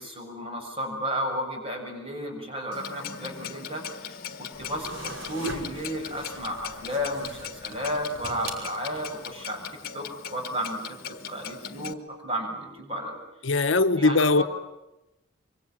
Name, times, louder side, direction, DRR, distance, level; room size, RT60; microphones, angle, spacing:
voice 1, 0.0-9.6 9.9-10.8 11.3-13.2 14.0-14.4, equal, 25° right, 7.2 m, -33 dB
Clock, 2.7-11.9, left 7 dB, 45° left, 1.5 m, -40 dB
sound 1, 4.5-9.3, right 1 dB, 75° right, 5.5 m, -41 dB
voice 2, 13.4-14.4, left 3 dB, 70° left, 1.1 m, -20 dB
25.5 x 25.0 x 9.0 m
head